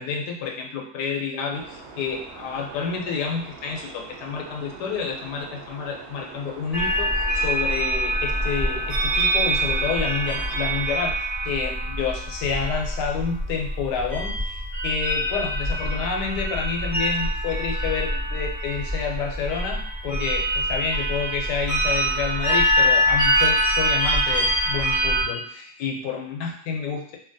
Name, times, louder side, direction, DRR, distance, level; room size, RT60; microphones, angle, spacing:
voice 1, 0.0-11.1 11.4-27.2, left 5 dB, 85° left, 1 dB, 1.2 m, -29 dB
sound 1, 1.5-10.8, right 4 dB, 85° right, 0.6 m, -43 dB
sound 2, 6.7-25.2, right 1 dB, ahead, 0.9 m, -24 dB
2.8 x 2.7 x 2.6 m, 0.66 s
omnidirectional pair, 1.7 m